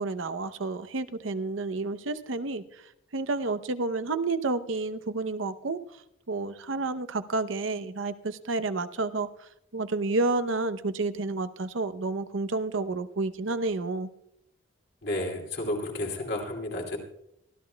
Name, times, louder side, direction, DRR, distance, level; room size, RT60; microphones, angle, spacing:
voice 1, 0.0-2.8 3.1-5.8 6.3-14.1, right 3 dB, 85° right, 11 dB, 0.7 m, -30 dB
voice 2, 15.0-17.0, left 1 dB, 55° left, 0 dB, 2.8 m, -31 dB
24.5 x 13.5 x 2.2 m, 0.76 s
head